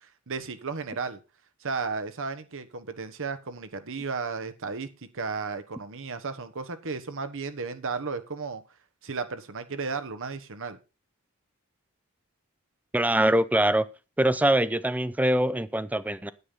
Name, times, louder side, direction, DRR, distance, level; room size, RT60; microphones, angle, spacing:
voice 1, 0.3-1.2 1.6-4.9 5.1-8.6 9.0-10.8, right 4 dB, 65° right, 10 dB, 1.3 m, -34 dB
voice 2, 12.9-13.9 14.2-16.3, right 1 dB, 5° right, 16 dB, 0.5 m, -23 dB
9.6 x 8.5 x 5.5 m, 0.31 s
head